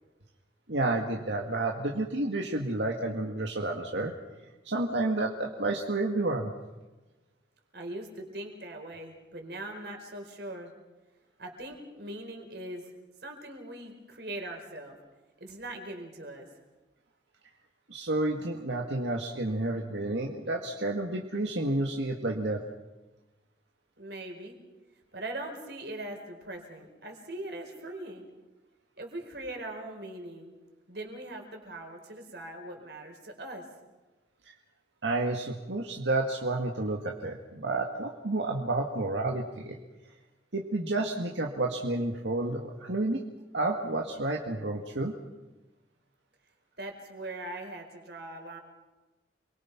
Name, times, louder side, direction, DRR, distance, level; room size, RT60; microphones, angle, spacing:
voice 1, 0.7-4.1 4.7-6.5 17.9-22.6 35.0-39.8 40.5-43.2 43.5-45.2, right 2 dB, 85° right, 0 dB, 2.0 m, -30 dB
voice 2, 7.7-10.7 11.4-12.8 13.2-15.0 15.4-16.5 24.0-24.6 25.1-28.3 29.0-30.5 30.9-33.6 46.8-48.6, right 1 dB, 65° right, 3 dB, 4.6 m, -41 dB
29.0 x 22.5 x 6.0 m, 1.1 s
head